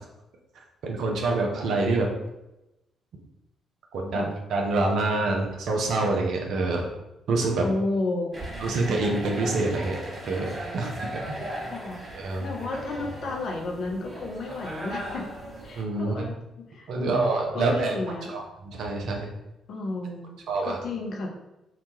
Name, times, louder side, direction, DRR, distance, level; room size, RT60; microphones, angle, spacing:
voice 1, 0.8-2.1 3.9-6.9 7.3-7.6 8.6-10.0 10.3-11.4 12.2-12.5 15.7-16.3 16.9-18.0 18.3-19.3 20.5-20.8, right 3 dB, 60° right, 1 dB, 0.5 m, -26 dB
voice 2, 7.6-8.3 11.7-12.0 12.4-15.3 15.6-16.4 16.7-17.1 17.5-18.3 19.7-21.3, left 2 dB, 60° left, 1 dB, 0.5 m, -32 dB
sound 1, 8.3-15.8, right 1 dB, 30° right, 1.1 m, -38 dB
2.9 x 2.2 x 2.7 m, 0.94 s
hypercardioid pair, 45°, 0 cm